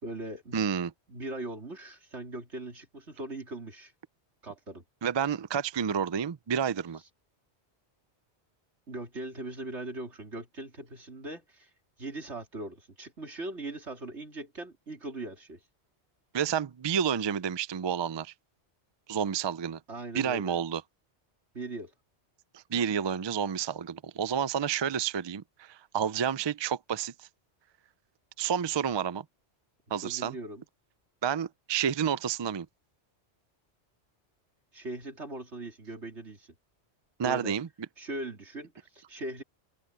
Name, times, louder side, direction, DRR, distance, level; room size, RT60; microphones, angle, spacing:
voice 1, 0.0-0.6 1.1-3.9 4.4-4.8 8.9-11.7 12.0-15.6 19.9-20.6 21.5-21.9 30.0-30.6 34.7-36.6 37.2-37.5 38.0-39.4, right 2 dB, 80° right, 3.9 m, -40 dB
voice 2, 0.5-0.9 5.0-7.0 16.3-18.3 19.1-19.8 20.1-20.8 22.5-27.3 28.4-29.2 29.9-30.3 31.2-32.7 37.2-37.7, right 8 dB, 45° right, 0.3 m, -30 dB
omnidirectional pair, 1.2 m